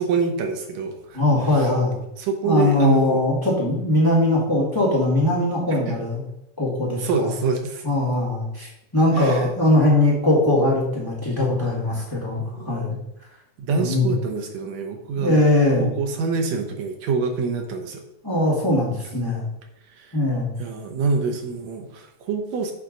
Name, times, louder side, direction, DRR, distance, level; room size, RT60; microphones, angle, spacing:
voice 1, 0.0-1.2 1.5-1.7 2.2-3.3 5.9-6.0 7.0-7.9 9.1-9.5 12.5-13.0 13.6-15.5 15.8-18.0 19.9-20.2 20.6-22.7, right 4 dB, 70° right, 4 dB, 2.1 m, -26 dB
voice 2, 1.1-2.0 2.4-6.2 6.6-7.3 7.8-13.0 13.7-14.1 15.2-15.9 18.2-19.5 20.1-20.5, left 1 dB, 10° left, -5 dB, 1.5 m, -20 dB
8.3 x 4.5 x 4.0 m, 0.83 s
omnidirectional pair, 3.3 m